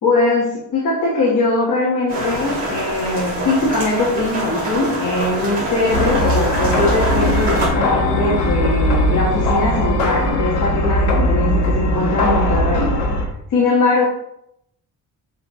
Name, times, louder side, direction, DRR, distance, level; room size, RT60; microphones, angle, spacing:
voice 1, 0.0-12.9 13.5-14.0, left 2 dB, 50° left, -6 dB, 1.8 m, -20 dB
sound 1, 2.1-7.7, right 1 dB, 20° right, 2.4 m, -25 dB
sound 2, 5.9-13.2, left 1 dB, 85° left, 1.7 m, -19 dB
6.9 x 5.0 x 3.2 m, 0.77 s
cardioid pair, 175°, 38 cm